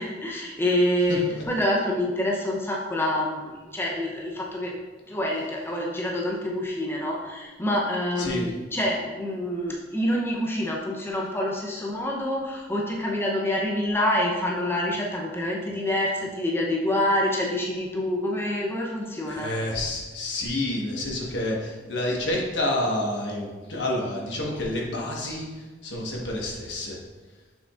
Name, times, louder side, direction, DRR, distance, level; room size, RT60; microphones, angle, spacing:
voice 1, 0.0-4.8 5.1-19.5, left 1 dB, 15° left, -2 dB, 0.6 m, -27 dB
voice 2, 1.1-1.4 8.2-8.4 19.3-27.0, left 1 dB, 70° left, -2 dB, 1.2 m, -29 dB
7.1 x 5.7 x 2.4 m, 1.3 s
head